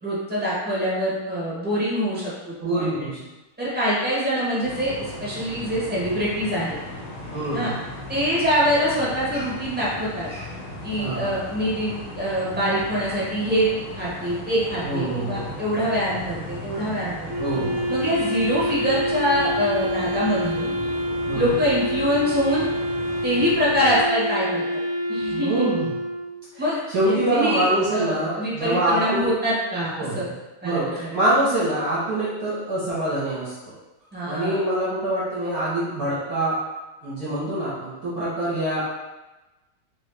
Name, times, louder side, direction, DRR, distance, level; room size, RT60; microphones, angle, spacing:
voice 1, 0.0-2.3 2.7-3.1 3.6-6.7 7.5-7.7 8.1-10.3 10.8-17.3 17.9-20.7 21.3-22.6 23.2-24.8 25.1-25.7 26.6-26.8 27.0-30.2 30.6-31.2 34.1-34.6, equal, 5° right, -8 dB, 0.7 m, -24 dB
voice 2, 2.6-3.2 7.3-7.8 11.0-11.3 14.8-15.5 17.4-17.9 21.3-21.5 25.3-25.9 26.5-29.3 30.0-30.3 30.6-33.5 34.2-36.6 37.0-38.8, right 1 dB, 55° right, -9 dB, 1.1 m, -25 dB
sound 1, 4.6-24.0, left 1 dB, 65° left, 0.7 m, -37 dB
Wind instrument woodwind instrument, 17.3-26.5, equal, 90° right, 1.5 m, -27 dB
4.0 x 3.0 x 3.4 m, 1.1 s
omnidirectional pair, 2.4 m